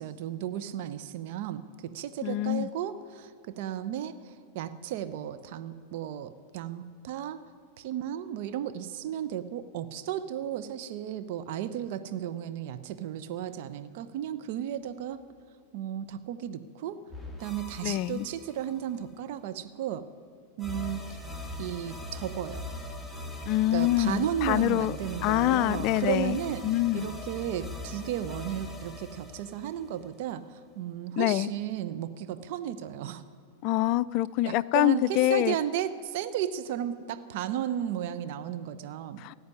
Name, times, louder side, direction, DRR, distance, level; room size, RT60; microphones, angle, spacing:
voice 1, 0.0-7.4 7.8-15.2 15.7-17.0 17.4-20.1 20.6-21.2 21.6-22.7 23.7-26.6 26.9-33.2 34.4-39.2, right 10 dB, 55° right, 12 dB, 0.8 m, -34 dB
voice 2, 2.2-2.7 17.8-18.3 23.5-24.9 25.2-26.4 26.6-27.1 31.2-31.5 33.6-35.6 39.2-39.3, left 15 dB, 50° left, 19 dB, 0.4 m, -25 dB
sound 1, 17.1-19.0 20.6-30.3, left 2 dB, 5° right, 2.3 m, -41 dB
15.0 x 9.6 x 9.7 m, 2.3 s
hypercardioid pair, 95°, 0 cm